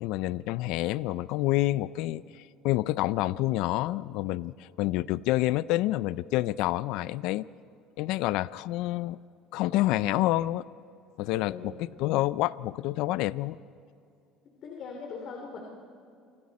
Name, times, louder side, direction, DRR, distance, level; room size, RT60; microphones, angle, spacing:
voice 1, 0.0-7.4 8.0-9.2 9.5-10.7 11.2-13.6, left 16 dB, 75° left, 19 dB, 0.4 m, -28 dB
voice 2, 14.6-15.6, left 5 dB, 55° left, 1 dB, 3.2 m, -40 dB
29.0 x 25.0 x 4.2 m, 2.5 s
cardioid pair, 115°, 0 cm